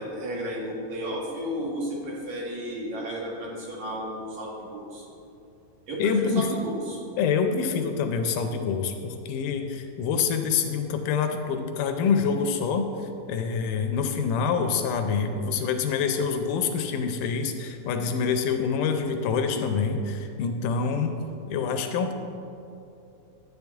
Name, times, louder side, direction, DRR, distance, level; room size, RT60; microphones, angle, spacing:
voice 1, 0.0-5.0 5.9-7.0, equal, 60° right, -4 dB, 2.7 m, -33 dB
voice 2, 6.0-6.5 7.2-12.9 13.3-21.2 21.5-22.1, left 6 dB, 80° left, 6 dB, 2.2 m, -26 dB
12.0 x 8.6 x 3.5 m, 2.7 s
omnidirectional pair, 3.9 m